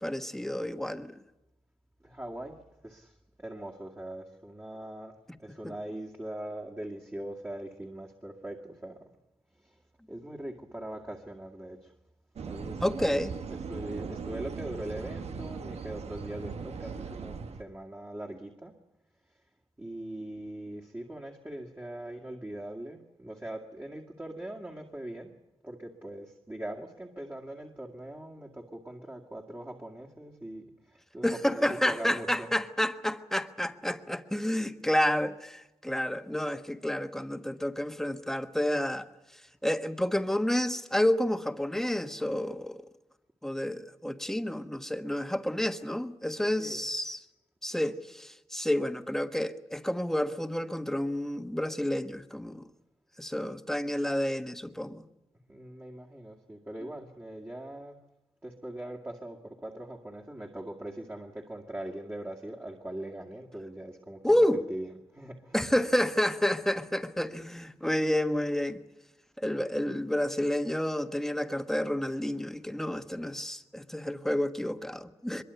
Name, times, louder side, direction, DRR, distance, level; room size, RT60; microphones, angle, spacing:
voice 1, 0.0-1.2 5.6-5.7 12.8-13.3 31.2-39.1 39.6-42.8 43.4-47.2 47.6-52.6 53.2-55.0 64.2-64.6 65.5-68.8 69.4-75.4, left 1 dB, 5° left, 1.3 m, -30 dB
voice 2, 2.0-9.1 9.6-9.8 10.1-11.9 12.5-18.7 19.8-25.3 25.6-32.5 46.4-46.8 47.9-48.0 55.5-58.0 58.4-65.7, right 1 dB, 20° right, 2.2 m, -41 dB
sound 1, 12.4-17.6, right 5 dB, 90° right, 1.4 m, -39 dB
23.5 x 22.5 x 8.2 m
wide cardioid pair, 90°, 11 cm